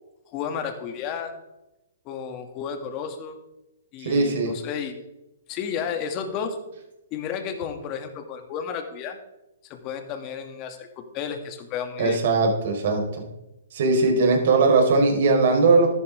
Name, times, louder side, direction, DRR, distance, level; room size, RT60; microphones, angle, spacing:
voice 1, 0.3-1.3 2.1-3.4 3.9-5.0 5.5-6.6 7.1-9.2 9.7-12.2, left 7 dB, 35° left, 6 dB, 2.2 m, -32 dB
voice 2, 4.0-4.5 12.0-13.2 13.7-15.9, right 3 dB, 60° right, 2 dB, 4.2 m, -19 dB
14.0 x 11.5 x 3.5 m, 0.94 s
hypercardioid pair, 130°, 0 cm